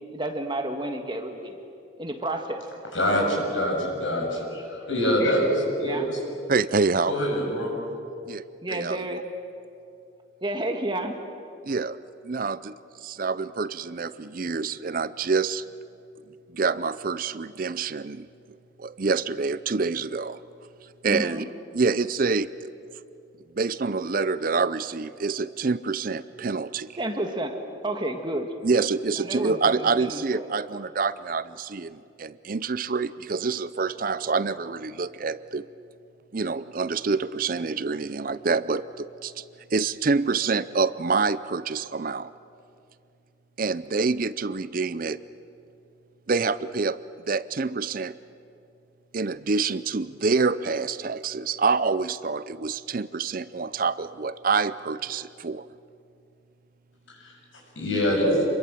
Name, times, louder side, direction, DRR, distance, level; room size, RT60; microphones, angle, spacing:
voice 1, 0.1-1.6 2.0-2.6 5.8-6.1 8.6-9.2 10.4-11.2 21.1-21.4 27.0-28.5 29.2-30.5, right 1 dB, 25° right, 4 dB, 1.6 m, -31 dB
voice 2, 2.9-6.2 7.1-7.8 57.2-57.3 57.8-58.4, equal, 75° left, -1 dB, 7.2 m, -25 dB
voice 3, 6.5-7.1 8.3-9.2 11.6-12.0 12.2-15.6 16.5-18.3 18.8-20.4 21.0-21.4 21.7-22.7 23.6-27.0 28.6-35.7 36.3-39.4 39.7-42.3 43.6-45.2 46.3-47.0 47.3-48.2 49.1-55.7, right 4 dB, 45° right, 16 dB, 0.5 m, -27 dB
27.5 x 22.5 x 7.6 m, 2.6 s
head